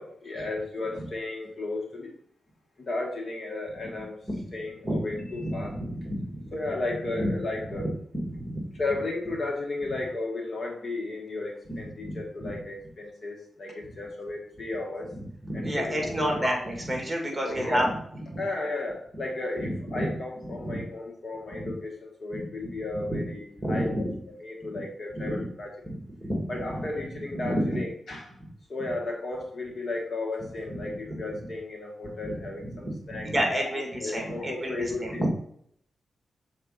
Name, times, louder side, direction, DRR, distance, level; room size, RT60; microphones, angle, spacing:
voice 1, 0.0-2.1 2.8-4.2 4.5-5.7 6.5-7.9 8.8-15.1 15.5-16.5 17.4-17.9 18.4-24.1 24.4-25.9 26.5-28.3 28.7-33.3 33.7-35.3, left 2 dB, 50° left, 0 dB, 1.3 m, -34 dB
voice 2, 5.4-6.5 7.2-7.3 8.1-8.6 11.7-12.2 12.4-12.5 15.4-17.9 18.3-18.4 19.6-20.1 20.4-20.8 21.6-21.7 22.3-22.4 22.7-23.2 23.6-24.2 25.2-25.5 25.8-26.8 27.3-27.8 30.7-31.2 32.2-35.3, equal, 10° right, 0 dB, 2.0 m, -30 dB
6.7 x 4.2 x 3.9 m, 0.65 s
cardioid pair, 90°, 0 cm